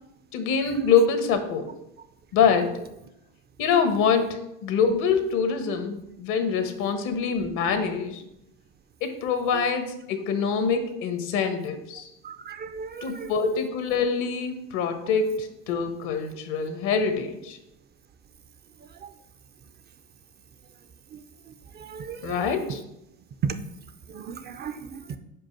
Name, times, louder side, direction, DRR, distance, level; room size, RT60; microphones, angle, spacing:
voice 1, 0.3-1.7 2.3-2.8 3.6-8.2 9.0-12.1 13.0-17.6 22.2-22.8, left 5 dB, 70° left, 7 dB, 1.2 m, -25 dB
voice 2, 12.2-13.3 21.8-22.4 23.4-23.5 24.1-25.2, right 6 dB, 30° right, 10 dB, 0.5 m, -34 dB
5.3 x 4.7 x 5.9 m, 0.85 s
supercardioid pair, 105°, 32 cm